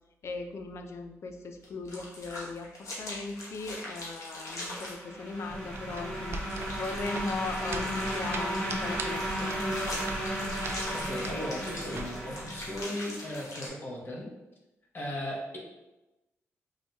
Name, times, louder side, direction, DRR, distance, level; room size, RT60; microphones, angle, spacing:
voice 1, 0.2-6.5 6.8-10.0, left 3 dB, 55° left, 6 dB, 0.4 m, -38 dB
sound 1, 1.6-4.9 6.5-13.7, left 1 dB, 70° left, 1.0 m, -42 dB
sound 2, 4.6-13.3, equal, 25° left, 1.4 m, -35 dB
sound 3, 5.5-12.8, right 3 dB, 50° right, 0.4 m, -41 dB
voice 2, 10.9-14.3 14.9-15.6, left 1 dB, 40° left, -2 dB, 1.0 m, -37 dB
4.8 x 2.7 x 2.3 m, 1.0 s
cardioid pair, 80°, 6 cm